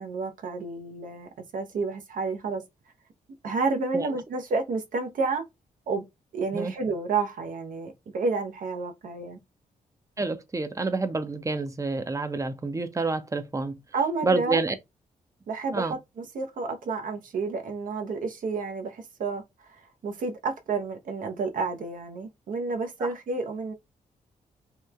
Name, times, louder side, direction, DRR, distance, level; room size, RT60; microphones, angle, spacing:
voice 1, 0.0-2.6 3.4-5.4 5.9-6.1 6.3-9.4 13.9-14.6 15.5-23.7, right 4 dB, 70° right, 0.6 m, -30 dB
voice 2, 10.2-13.8 14.2-14.7 15.7-15.9 23.0-23.1, right 3 dB, 20° right, 0.5 m, -28 dB
2.9 x 2.1 x 2.3 m
cardioid pair, 65°, 15 cm